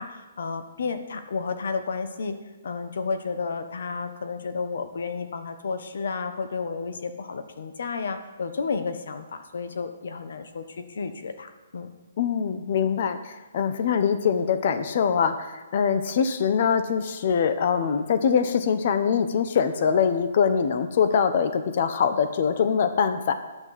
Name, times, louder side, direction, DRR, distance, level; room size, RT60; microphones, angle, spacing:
voice 1, 0.0-2.4 2.6-11.9, left 4 dB, 65° left, 9 dB, 1.2 m, -32 dB
voice 2, 12.2-23.3, left 7 dB, 45° left, 10 dB, 0.9 m, -23 dB
11.0 x 6.1 x 7.6 m, 1.2 s
hypercardioid pair, 165°, 0 cm